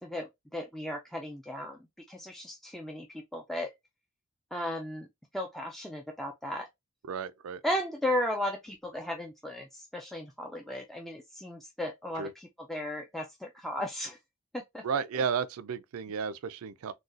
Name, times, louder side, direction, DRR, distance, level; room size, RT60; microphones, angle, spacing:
voice 1, 0.0-1.8 2.1-3.7 4.5-5.1 5.3-6.7 7.6-14.2 14.5-14.8, left 1 dB, ahead, 0.4 m, -35 dB
voice 2, 7.1-7.6 12.2-12.3 14.8-16.9, right 6 dB, 75° right, 0.4 m, -33 dB
3.9 x 2.3 x 2.4 m
head